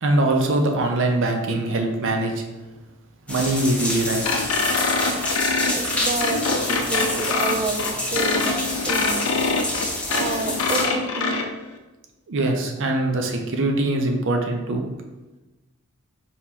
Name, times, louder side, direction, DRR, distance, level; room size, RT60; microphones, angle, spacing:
voice 1, 0.0-2.4 3.3-4.2 12.3-14.8, right 2 dB, 60° right, 3 dB, 0.6 m, -22 dB
sound 1, 3.3-10.8, left 1 dB, 5° left, 0.6 m, -28 dB
sound 2, 4.2-11.4, left 3 dB, 65° left, 0.5 m, -24 dB
voice 2, 5.5-8.6 8.9-9.3 10.1-11.5, right 3 dB, 30° right, 6 dB, 0.3 m, -29 dB
4.4 x 3.0 x 3.8 m, 1.1 s
head